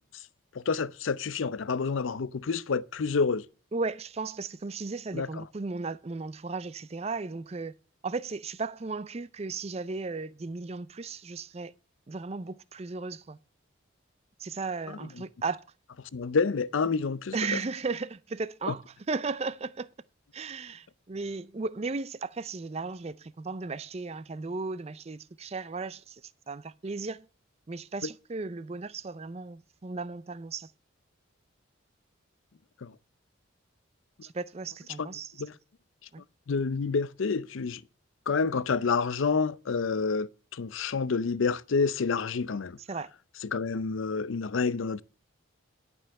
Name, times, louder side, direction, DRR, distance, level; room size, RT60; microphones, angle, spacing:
voice 1, 0.5-3.5 5.1-5.4 16.1-17.6 18.7-18.8 32.8-32.9 35.0-35.1 35.4-35.5 36.5-37.8 38.3-42.8 43.4-45.0, left 5 dB, 75° left, 0.5 m, -28 dB
voice 2, 3.7-7.8 8.0-11.7 12.1-13.4 14.4-15.6 17.3-19.9 20.3-26.2 26.5-27.3 27.7-30.7 34.2-35.3 36.1-36.2 42.8-43.1, right 4 dB, 30° right, 0.4 m, -35 dB
11.5 x 5.5 x 6.4 m
head